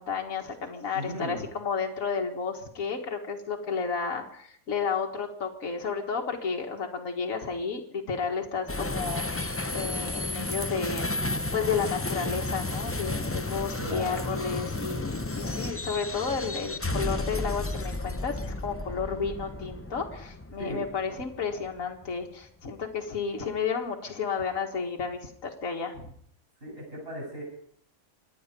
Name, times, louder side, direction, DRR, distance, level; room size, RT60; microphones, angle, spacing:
voice 1, 0.0-11.1 11.5-26.1, left 5 dB, 70° left, 1 dB, 2.1 m, -32 dB
voice 2, 0.9-1.5 13.8-14.2 20.6-20.8 26.6-27.4, equal, 40° right, -5 dB, 7.8 m, -36 dB
sound 1, 8.7-22.0, left 2 dB, 20° left, 0.3 m, -33 dB
25.5 x 9.7 x 5.3 m, 0.63 s
omnidirectional pair, 1.5 m